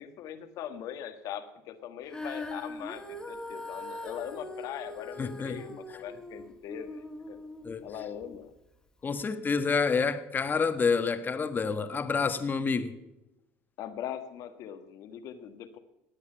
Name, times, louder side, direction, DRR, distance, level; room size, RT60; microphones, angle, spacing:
voice 1, 0.0-7.4 7.8-8.5 13.8-15.8, left 9 dB, 60° left, 1.5 m, -41 dB
Female singing, 2.1-8.4 9.1-9.2, left 2 dB, 10° left, 2.4 m, -42 dB
voice 2, 5.2-5.6 7.6-7.8 9.0-12.9, left 5 dB, 30° left, 1.4 m, -28 dB
17.5 x 8.5 x 5.7 m
supercardioid pair, 85°, 7 cm